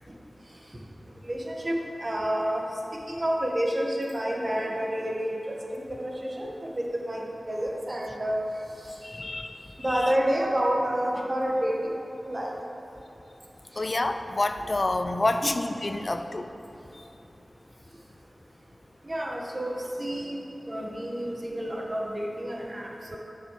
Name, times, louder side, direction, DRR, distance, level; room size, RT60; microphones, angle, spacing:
voice 1, 1.2-2.7 2.9-8.4 9.8-12.0 12.2-12.5 15.4-15.5 19.0-20.4 20.6-23.2, equal, 40° right, -1 dB, 1.6 m, -29 dB
voice 2, 9.0-10.1 13.8-16.5 16.9-17.0, left 2 dB, 50° left, 7 dB, 0.5 m, -28 dB
9.4 x 6.6 x 6.6 m, 2.9 s
wide cardioid pair, 50°, 0 cm